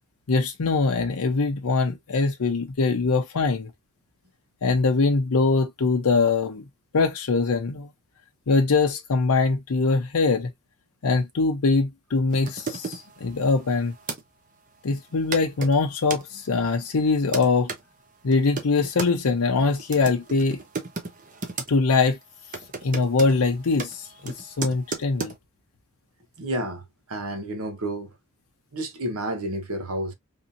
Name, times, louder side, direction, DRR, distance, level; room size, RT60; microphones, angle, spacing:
voice 1, 0.3-3.7 4.6-6.6 6.9-7.9 8.5-10.5 11.0-13.9 14.8-17.7 18.2-20.6 21.7-22.2 22.8-25.3, left 4 dB, 80° left, 0.6 m, -22 dB
sound 1, 12.3-14.2 15.0-15.1 15.3-16.2 16.9-17.8 18.3-19.1 19.8-21.7 22.0-22.2 22.5-25.4, right 4 dB, 35° right, 0.7 m, -35 dB
voice 2, 26.4-26.8 27.1-28.1 28.7-30.1, right 1 dB, 80° right, 0.9 m, -30 dB
3.5 x 2.7 x 2.6 m
head